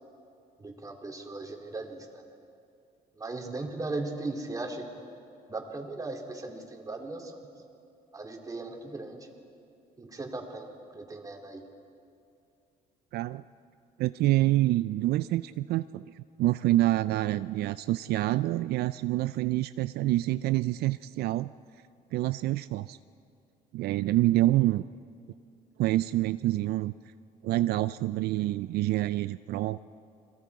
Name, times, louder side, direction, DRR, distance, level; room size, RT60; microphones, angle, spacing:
voice 1, 0.6-2.2 3.2-4.9 5.5-7.5 8.1-9.3 10.0-11.7, right 2 dB, 20° right, 2 dB, 2.9 m, -38 dB
voice 2, 13.1-13.4 14.0-21.5 22.1-23.0 23.7-24.8 25.8-26.9 27.4-29.8, right 16 dB, 70° right, 14 dB, 0.4 m, -27 dB
29.5 x 22.5 x 4.8 m, 2.5 s
cardioid pair, 110°, 17 cm